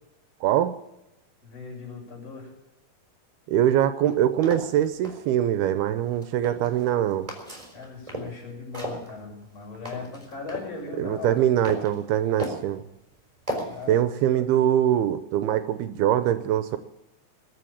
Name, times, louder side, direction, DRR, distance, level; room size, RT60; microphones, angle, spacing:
voice 1, 0.4-0.8 3.5-7.3 11.0-12.8 13.9-16.8, right 11 dB, 80° right, 11 dB, 2.6 m, -23 dB
voice 2, 1.4-2.5 7.7-11.5 13.6-14.6, left 4 dB, 40° left, -3 dB, 7.4 m, -38 dB
sound 1, 4.0-5.2 6.0-6.9 7.3-8.4 8.7-10.7 11.2-11.9 12.4-12.7 13.5-13.9, right 1 dB, 10° right, 3.3 m, -35 dB
21.0 x 7.7 x 8.6 m, 0.92 s
omnidirectional pair, 4.7 m